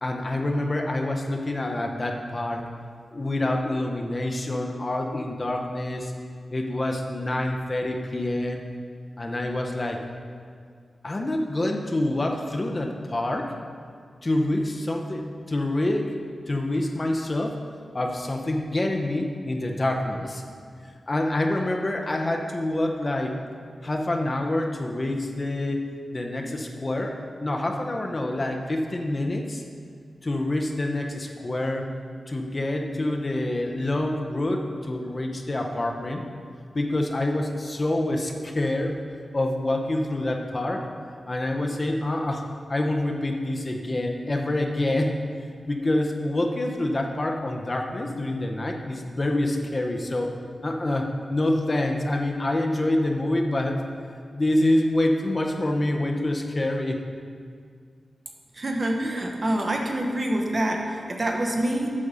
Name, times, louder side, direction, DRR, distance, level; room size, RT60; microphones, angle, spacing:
voice 1, 0.0-2.6 3.1-6.1 6.5-8.6 9.2-10.0 11.0-13.5 14.2-16.1 16.5-17.6 17.9-20.4 20.8-23.3 23.8-29.6 30.2-31.9 32.3-36.2 36.7-39.0 39.3-40.8 41.3-42.4 42.7-45.2 45.7-50.3 50.6-53.8 54.3-57.0, left 1 dB, 30° left, 2 dB, 0.7 m, -26 dB
voice 2, 58.6-61.9, right 1 dB, 35° right, 1 dB, 1.0 m, -26 dB
8.4 x 6.5 x 5.5 m, 2.1 s
wide cardioid pair, 125°, 0 cm